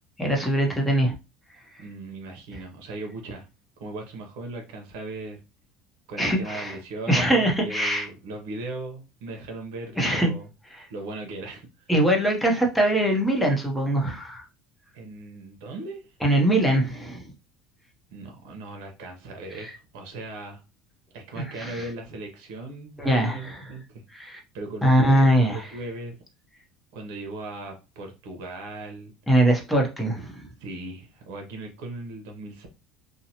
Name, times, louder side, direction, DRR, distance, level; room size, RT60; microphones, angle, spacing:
voice 1, 0.2-1.1 6.2-6.7 7.1-8.1 10.0-10.3 10.7-10.8 11.9-14.4 16.2-17.2 19.6-19.7 21.3-21.8 23.0-23.6 24.1-24.4 24.8-25.7 29.3-30.5, right 1 dB, ahead, 0 dB, 0.8 m, -22 dB
voice 2, 1.8-3.5 3.8-5.4 6.1-10.5 10.9-11.9 14.9-16.0 18.1-20.6 21.1-24.0 24.5-26.2 26.9-29.1 30.6-32.7, right 2 dB, 80° right, 3 dB, 0.9 m, -38 dB
2.7 x 2.1 x 2.8 m, 0.28 s
cardioid pair, 125°, 0 cm